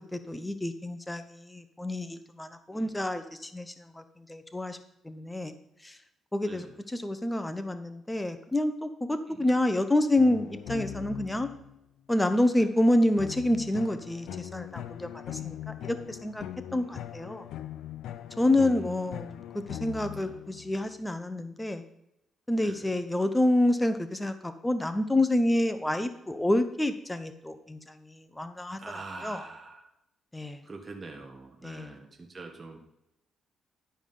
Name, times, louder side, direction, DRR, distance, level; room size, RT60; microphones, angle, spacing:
voice 1, 0.1-4.8 5.0-5.5 5.8-6.0 6.3-6.7 6.9-11.5 12.1-16.4 16.7-17.4 18.4-19.4 19.7-21.8 22.5-28.8 29.2-29.4 30.3-30.6 31.6-31.9, left 1 dB, 10° left, 9 dB, 0.8 m, -28 dB
voice 2, 6.4-6.8 9.3-9.7 10.9-11.0 12.5-12.7 15.3-15.6 16.8-17.1 18.3-19.1 20.1-20.4 22.5-23.0 28.8-29.9 30.6-32.8, right 3 dB, 25° right, 1 dB, 1.6 m, -45 dB
sound 1, 10.2-11.8 13.2-20.9, left 11 dB, 80° left, 0.5 m, -41 dB
11.5 x 5.0 x 5.5 m, 0.83 s
cardioid pair, 90°, 0 cm